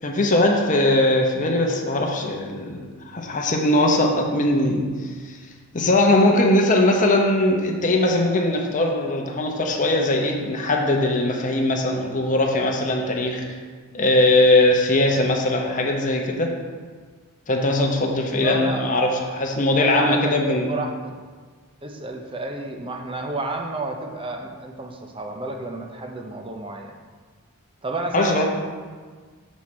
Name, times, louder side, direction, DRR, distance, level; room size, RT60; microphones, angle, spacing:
voice 1, 0.0-2.8 3.1-4.9 5.7-13.4 13.9-16.5 17.5-20.7 28.1-28.4, left 1 dB, 35° left, 1 dB, 0.8 m, -20 dB
voice 2, 18.3-18.9 19.8-21.2 21.8-26.9 27.8-28.4, right 2 dB, 25° right, 3 dB, 0.6 m, -31 dB
6.3 x 4.2 x 6.0 m, 1.5 s
head